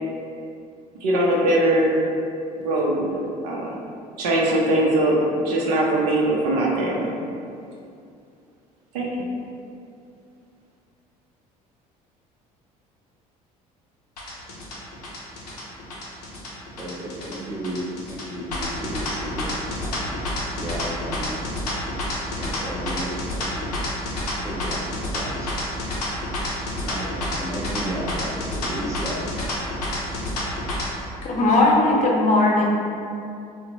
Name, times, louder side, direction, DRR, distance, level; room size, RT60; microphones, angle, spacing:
voice 1, 1.0-2.0 2.6-3.1 3.4-3.7 4.2-7.1 8.9-9.1, right 1 dB, 80° right, -2 dB, 0.5 m, -21 dB
sound 1, 14.2-30.9, left 2 dB, 90° left, 0.5 m, -29 dB
voice 2, 16.8-21.4 22.3-23.8 24.4-25.5 26.4-29.3, right 1 dB, 15° right, -4 dB, 0.6 m, -34 dB
voice 3, 31.2-32.6, left 2 dB, 40° left, -3 dB, 0.6 m, -18 dB
2.8 x 2.0 x 2.9 m, 2.5 s
hypercardioid pair, 60°, 20 cm